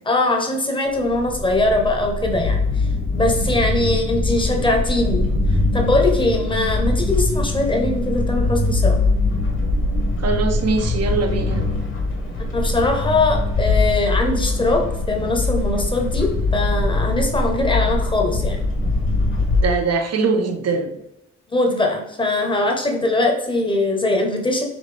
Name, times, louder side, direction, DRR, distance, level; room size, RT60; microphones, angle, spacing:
voice 1, 0.1-2.9 3.1-5.3 5.7-9.0 12.5-14.8 15.1-18.6 21.5-24.6, left 2 dB, 15° left, 2 dB, 0.9 m, -21 dB
sound 1, 0.9-19.6, left 2 dB, 45° left, 1.3 m, -22 dB
voice 2, 10.2-11.7 19.6-20.9, right 4 dB, 60° right, 5 dB, 0.7 m, -22 dB
5.2 x 2.7 x 3.3 m, 0.86 s
cardioid pair, 75°, 29 cm